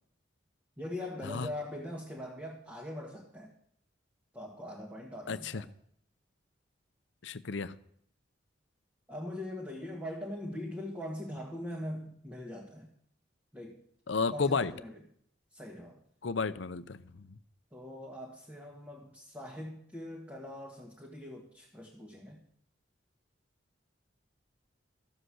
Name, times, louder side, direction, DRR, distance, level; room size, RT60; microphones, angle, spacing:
voice 1, 0.8-3.5 4.3-5.7 9.1-12.9 13.5-13.8 14.3-15.0 15.5-16.0 17.7-22.4, left 1 dB, 10° right, -2 dB, 1.7 m, -42 dB
voice 2, 5.3-5.6 7.2-7.7 14.1-14.7 16.2-17.4, left 4 dB, 75° left, 14 dB, 0.6 m, -32 dB
14.5 x 7.8 x 6.3 m, 0.65 s
head